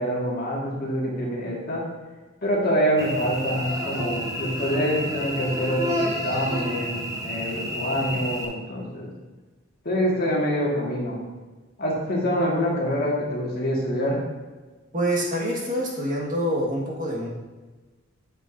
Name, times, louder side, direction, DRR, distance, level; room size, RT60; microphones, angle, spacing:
voice 1, 0.0-1.9 2.4-7.0 7.2-9.1 9.9-11.2 11.8-14.2, equal, 45° left, -3 dB, 1.8 m, -25 dB
Cricket / Buzz, 3.0-8.5, equal, 15° right, 0.9 m, -30 dB
voice 2, 14.9-17.3, equal, 40° right, -3 dB, 1.7 m, -26 dB
8.9 x 8.1 x 2.7 m, 1.3 s
head